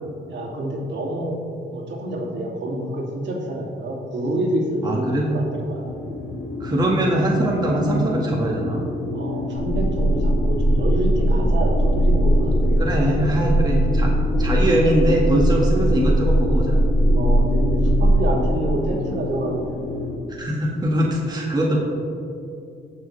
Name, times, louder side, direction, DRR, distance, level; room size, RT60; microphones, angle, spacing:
voice 1, 0.3-1.4 1.7-6.0 9.1-13.2 13.8-13.9 17.1-19.8, right 1 dB, 65° right, -3 dB, 2.6 m, -28 dB
voice 2, 4.8-5.2 6.6-8.8 11.4-11.6 12.8-14.1 14.4-16.7 20.4-21.8, right 1 dB, 20° right, -3 dB, 1.7 m, -21 dB
sound 1, 5.8-20.2, left 3 dB, 75° left, 1.9 m, -29 dB
sound 2, 9.6-18.2, right 1 dB, 35° left, 2.3 m, -19 dB
18.5 x 6.5 x 3.3 m, 2.5 s
cardioid pair, 90°, 20 cm